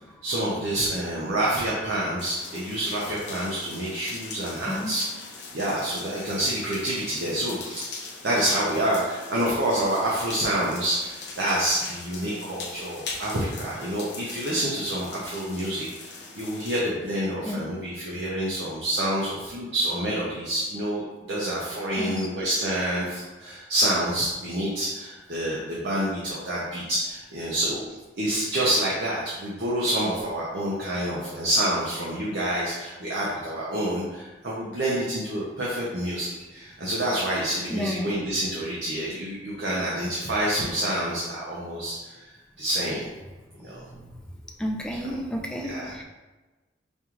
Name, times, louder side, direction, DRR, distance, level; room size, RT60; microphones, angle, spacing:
voice 1, 0.2-43.0 43.6-43.8 45.6-45.9, right 1 dB, 65° right, -6 dB, 0.7 m, -28 dB
sound 1, 2.2-16.8, left 4 dB, 65° left, 0.6 m, -41 dB
voice 2, 4.7-5.0 17.4-17.8 22.0-22.3 37.7-38.1 43.9-44.1 44.6-46.0, equal, 5° left, 1 dB, 0.3 m, -31 dB
5.3 x 2.4 x 3.0 m, 1.2 s
head